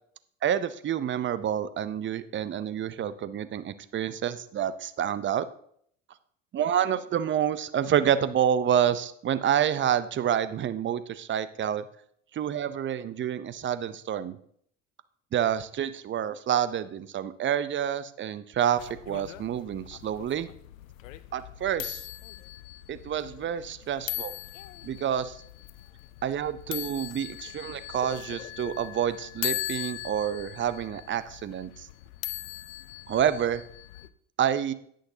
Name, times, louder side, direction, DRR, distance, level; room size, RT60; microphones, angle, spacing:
voice 1, 0.4-5.5 6.5-11.8 12.3-14.4 15.3-20.5 21.3-22.1 22.9-24.3 24.8-25.4 26.2-31.9 33.1-33.6 34.4-34.7, right 9 dB, 30° right, 14 dB, 0.7 m, -28 dB
sound 1, 18.8-34.1, left 14 dB, 80° left, 0.6 m, -39 dB
18.5 x 6.5 x 2.8 m, 0.65 s
hypercardioid pair, 70°, 40 cm